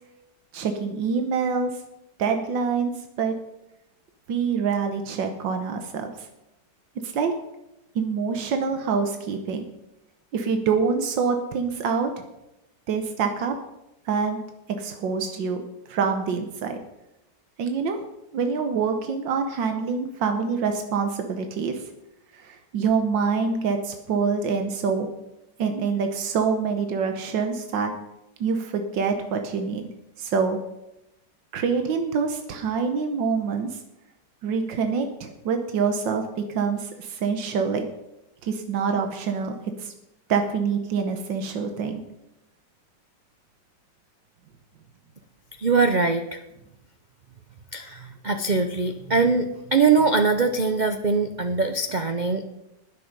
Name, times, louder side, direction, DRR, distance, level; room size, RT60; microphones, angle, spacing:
voice 1, 0.5-1.7 2.2-2.9 3.2-3.3 4.3-6.1 7.0-7.3 8.0-9.6 10.3-12.1 12.9-13.5 14.1-14.4 14.8-15.6 15.9-16.8 17.6-18.0 18.3-21.8 22.4-25.1 25.6-27.9 28.4-29.9 30.2-30.6 31.5-33.8 34.4-37.9 38.4-39.9 40.3-42.0, right 5 dB, 90° right, 6 dB, 1.8 m, -25 dB
voice 2, 45.6-46.4 47.7-52.4, right 4 dB, 70° right, 7 dB, 0.4 m, -22 dB
20.0 x 6.9 x 5.3 m, 0.91 s
omnidirectional pair, 1.9 m